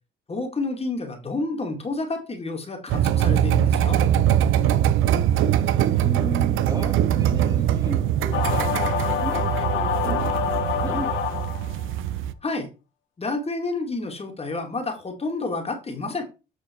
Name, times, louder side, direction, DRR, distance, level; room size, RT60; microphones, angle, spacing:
voice 1, 0.3-4.0 12.4-12.7 13.2-16.3, left 3 dB, 30° left, 3 dB, 2.3 m, -29 dB
sound 1, 2.9-12.3, right 10 dB, 85° right, 0.6 m, -22 dB
voice 2, 6.0-11.1, right 1 dB, 20° right, 4 dB, 1.8 m, -35 dB
sound 2, 8.3-11.8, left 9 dB, 80° left, 1.2 m, -26 dB
8.4 x 4.4 x 4.6 m, 0.30 s
cardioid pair, 90°, 20 cm